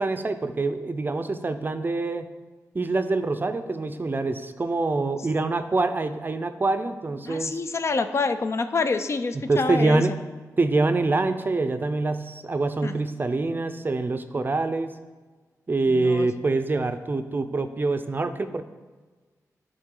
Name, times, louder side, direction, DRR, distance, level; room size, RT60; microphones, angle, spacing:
voice 1, 0.0-2.3 2.7-7.6 9.3-10.1 10.6-14.9 15.7-18.6, right 3 dB, 35° right, 9 dB, 0.4 m, -25 dB
voice 2, 7.3-10.0 12.8-12.9 15.9-16.3, left 4 dB, 45° left, 9 dB, 0.4 m, -26 dB
9.7 x 4.0 x 3.7 m, 1.3 s
wide cardioid pair, 85°, 6 cm